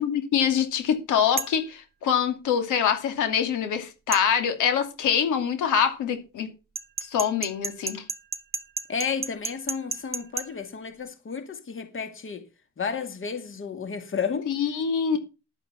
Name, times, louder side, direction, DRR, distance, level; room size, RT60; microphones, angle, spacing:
voice 1, 0.0-6.5 7.0-8.0 14.5-15.2, left 8 dB, 85° left, 2.7 m, -24 dB
sound 1, 1.4-1.6 4.1-4.3 6.7-10.5, right 4 dB, 30° right, 1.0 m, -31 dB
voice 2, 8.9-12.4 12.8-14.5, left 6 dB, 45° left, 2.5 m, -32 dB
11.0 x 8.9 x 5.7 m
cardioid pair, 90°, 30 cm